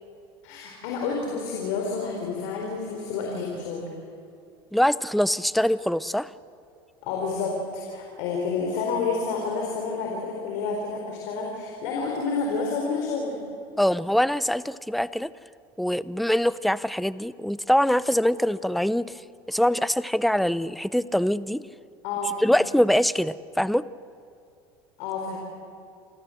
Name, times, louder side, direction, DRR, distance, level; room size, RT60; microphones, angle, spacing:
voice 1, 0.4-3.9 7.0-13.4 22.0-22.5 25.0-25.4, left 4 dB, 70° left, 0 dB, 4.1 m, -29 dB
voice 2, 4.7-6.3 13.8-15.3 15.8-19.2 19.5-21.6 22.4-23.8, equal, ahead, 17 dB, 0.5 m, -23 dB
28.5 x 14.0 x 7.8 m, 2.5 s
supercardioid pair, 105°, 13 cm